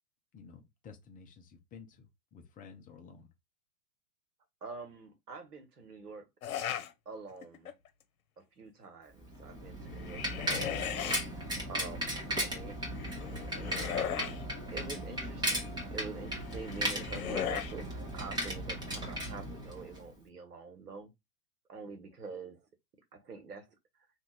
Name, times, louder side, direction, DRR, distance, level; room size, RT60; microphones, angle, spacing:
voice 1, 0.3-3.3, left 5 dB, 20° left, 0.7 m, -53 dB
voice 2, 4.6-6.3 7.0-7.7 8.4-10.2 10.5-12.8 13.6-14.4 14.7-21.1 21.7-22.7 23.1-23.7, right 4 dB, 85° right, 1.3 m, -46 dB
sound 1, 6.4-6.9 7.4-7.9 9.9-11.2 13.0-14.4 16.4-17.7, left 10 dB, 65° left, 1.0 m, -37 dB
Bicycle, 9.2-20.1, equal, 10° right, 1.1 m, -37 dB
2.8 x 2.7 x 3.7 m
hypercardioid pair, 110°, 46 cm